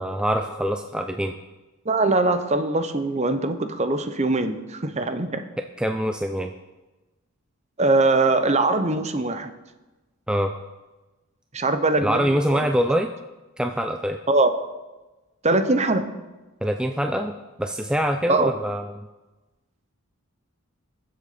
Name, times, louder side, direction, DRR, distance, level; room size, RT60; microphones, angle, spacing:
voice 1, 0.0-1.3 5.8-6.5 10.3-10.5 12.0-13.1 13.6-14.2 16.6-19.1, equal, 5° right, 5 dB, 0.4 m, -24 dB
voice 2, 1.9-5.4 7.8-9.5 11.5-12.7 14.3-14.6 15.4-16.1 18.3-18.5, right 2 dB, 30° right, 9 dB, 0.8 m, -22 dB
21.5 x 7.7 x 4.2 m, 1.1 s
head